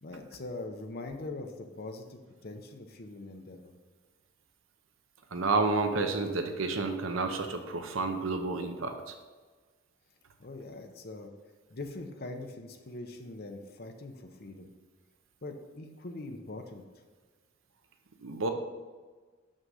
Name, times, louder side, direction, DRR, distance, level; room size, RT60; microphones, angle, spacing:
voice 1, 0.0-3.7 10.4-11.3 11.7-14.7 15.4-16.8, left 2 dB, 50° left, 4 dB, 0.8 m, -42 dB
voice 2, 5.3-9.1 18.2-18.5, right 3 dB, 85° right, 6 dB, 0.8 m, -30 dB
6.4 x 6.3 x 5.5 m, 1.4 s
head